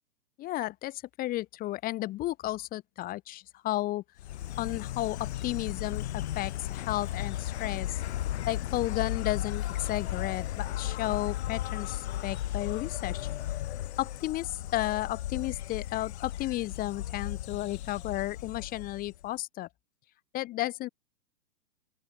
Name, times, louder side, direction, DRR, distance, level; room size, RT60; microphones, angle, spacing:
voice 1, 0.4-4.0 4.6-8.0 8.4-13.3 14.0-19.7 20.3-20.9, left 16 dB, 20° left, 1.4 m, -33 dB
Insect, 4.2-19.3, left 13 dB, 40° left, 1.3 m, -35 dB
open air
figure-of-eight pair, 120°, 48 cm